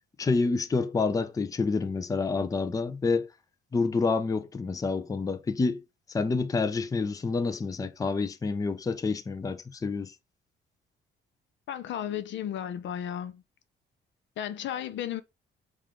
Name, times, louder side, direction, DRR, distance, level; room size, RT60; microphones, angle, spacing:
voice 1, 0.2-3.3 3.7-5.8 6.1-10.1, left 4 dB, 15° left, 0.4 m, -28 dB
voice 2, 11.7-13.4 14.4-15.2, left 10 dB, 70° left, 0.5 m, -34 dB
4.7 x 2.4 x 3.5 m
cardioid pair, 90°, 20 cm